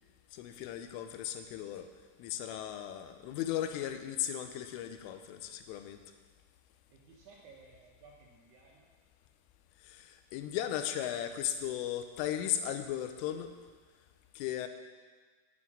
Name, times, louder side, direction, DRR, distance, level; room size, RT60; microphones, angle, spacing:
voice 1, 0.3-1.9 2.2-6.0 9.9-13.5 14.4-14.7, left 11 dB, 85° left, 8 dB, 3.2 m, -36 dB
voice 2, 6.9-8.9 14.1-14.3, right 4 dB, 75° right, -2 dB, 2.6 m, -58 dB
8.0 x 7.1 x 8.5 m, 1.5 s
omnidirectional pair, 5.7 m